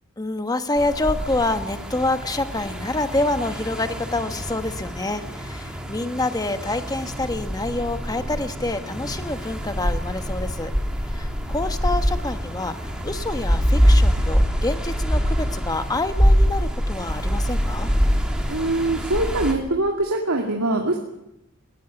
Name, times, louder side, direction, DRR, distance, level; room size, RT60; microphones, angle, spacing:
voice 1, 0.2-10.7 11.1-12.8 13.0-17.9, left 2 dB, 15° left, 8 dB, 1.4 m, -27 dB
sound 1, 0.8-19.5, equal, 5° right, 2.9 m, -24 dB
voice 2, 18.5-21.0, right 2 dB, 70° right, 1 dB, 2.3 m, -23 dB
20.5 x 17.0 x 9.2 m, 0.89 s
head